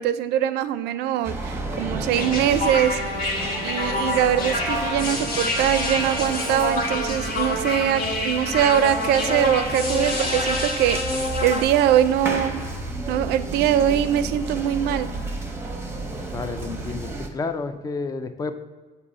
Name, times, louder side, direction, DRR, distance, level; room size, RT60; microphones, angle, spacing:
voice 1, 0.0-3.3 3.6-12.5 13.1-15.1, right 10 dB, 80° right, 12 dB, 0.4 m, -22 dB
sound 1, 1.2-17.3, right 2 dB, 15° right, 0.8 m, -32 dB
sound 2, 2.1-11.6, left 2 dB, 55° left, 1.1 m, -27 dB
voice 2, 16.3-18.5, left 4 dB, 20° left, 8 dB, 0.4 m, -30 dB
6.8 x 2.7 x 5.3 m, 1.4 s
cardioid pair, 110°, 17 cm